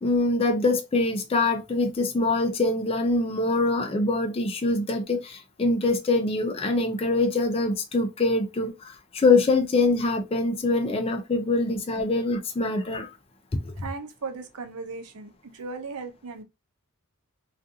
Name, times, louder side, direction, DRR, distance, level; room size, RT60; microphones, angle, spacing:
voice 1, 0.0-13.1 13.6-13.7, left 3 dB, 25° left, 0.4 m, -24 dB
voice 2, 13.8-16.4, right 4 dB, 85° right, 0.6 m, -37 dB
2.4 x 2.4 x 2.6 m
head